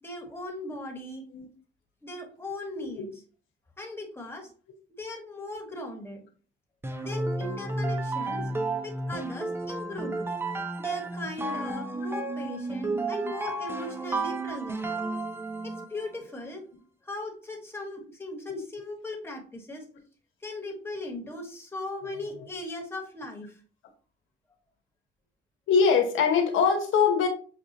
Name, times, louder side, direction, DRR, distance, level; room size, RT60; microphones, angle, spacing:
voice 1, 0.0-1.2 2.0-3.1 3.8-4.5 5.0-6.2 7.0-8.5 8.8-10.3 10.8-14.9 15.6-16.7 17.0-19.8 20.4-23.6, left 1 dB, 10° left, 1 dB, 1.4 m, -38 dB
sound 1, 6.8-16.0, right 2 dB, 10° right, 0.5 m, -32 dB
voice 2, 22.1-22.5 25.7-27.3, left 6 dB, 80° left, 5 dB, 1.0 m, -23 dB
6.5 x 2.4 x 2.7 m, 0.41 s
cardioid pair, 90°, 20 cm